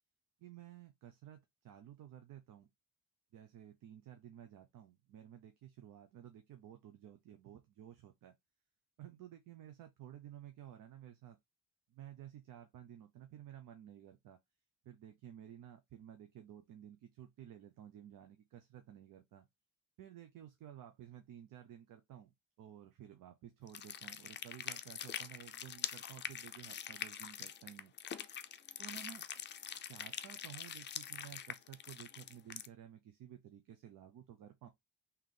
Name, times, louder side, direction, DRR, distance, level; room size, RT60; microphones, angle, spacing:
voice 1, 0.4-2.7 3.3-8.3 9.0-11.4 11.9-14.4 14.8-19.5 20.0-27.9 28.8-29.2 29.9-34.7, right 10 dB, 70° right, 0.7 m, -54 dB
sound 1, 23.7-32.7, left 8 dB, 35° left, 0.4 m, -44 dB
3.7 x 3.0 x 3.2 m
cardioid pair, 100°, 33 cm